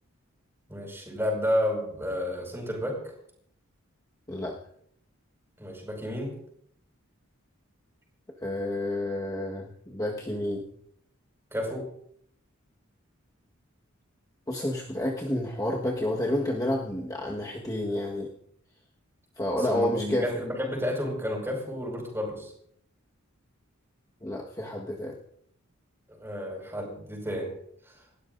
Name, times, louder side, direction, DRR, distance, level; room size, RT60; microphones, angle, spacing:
voice 1, 0.7-3.1 5.6-6.4 11.5-11.9 19.6-22.5 26.1-27.5 27.9-28.0, equal, 10° right, 0 dB, 5.3 m, -31 dB
voice 2, 8.4-10.6 14.5-18.3 19.4-20.3 24.2-25.2, left 1 dB, 15° left, -2 dB, 1.4 m, -30 dB
29.0 x 13.0 x 2.6 m, 0.68 s
head